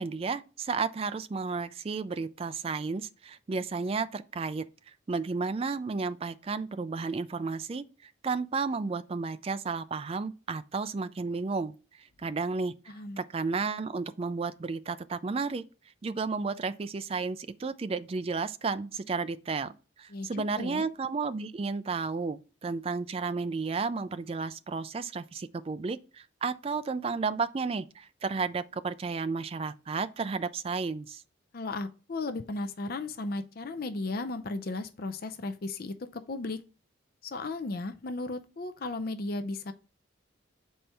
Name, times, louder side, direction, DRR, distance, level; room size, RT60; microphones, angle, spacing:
voice 1, 0.0-4.6 5.1-12.7 13.2-15.6 16.0-31.2, right 4 dB, 30° right, 0.3 m, -32 dB
voice 2, 12.9-13.2 20.1-20.9 31.5-36.6 37.2-39.7, left 2 dB, 50° left, 0.4 m, -35 dB
7.5 x 4.3 x 3.4 m
head